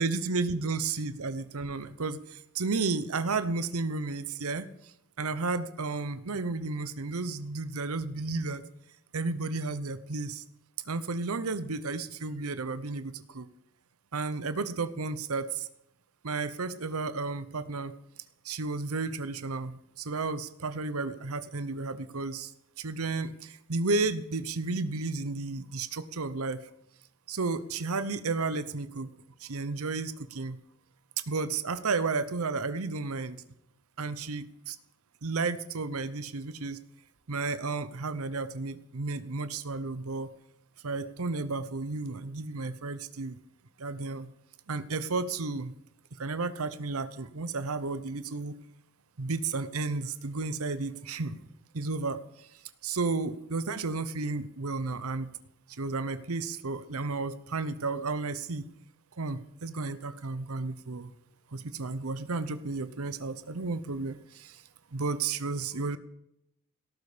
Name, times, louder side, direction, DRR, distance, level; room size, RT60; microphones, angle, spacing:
voice 1, 0.0-8.6 9.1-10.4 10.9-13.5 14.1-15.7 16.2-17.9 18.4-22.5 22.8-26.6 27.3-29.1 29.4-30.6 31.3-33.4 34.0-34.8 35.2-36.8 37.3-40.3 40.8-43.4 43.8-44.3 44.7-45.7 46.2-48.6 49.2-51.4 51.7-52.5 52.8-55.3 55.8-58.7 59.2-61.1 61.5-64.6 64.9-66.0, right 3 dB, 85° right, 13 dB, 0.9 m, -32 dB
17.5 x 14.0 x 5.1 m, 0.79 s
head